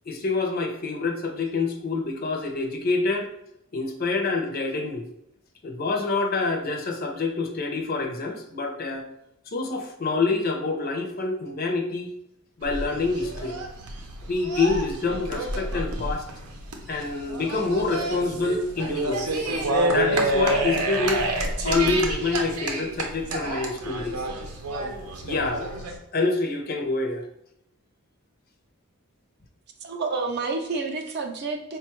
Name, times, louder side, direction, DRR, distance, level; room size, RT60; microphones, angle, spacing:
voice 1, 0.1-3.3 3.7-5.1 5.6-9.0 9.5-12.1 12.6-13.6 14.3-16.3 16.9-19.5 19.9-21.2 21.6-24.2 25.2-27.2, left 3 dB, 40° left, 3 dB, 0.5 m, -27 dB
sound 1, 12.6-26.0, right 1 dB, 90° right, 0.6 m, -28 dB
voice 2, 29.8-31.8, right 4 dB, 45° right, 3 dB, 0.5 m, -29 dB
4.8 x 2.2 x 3.0 m, 0.79 s
head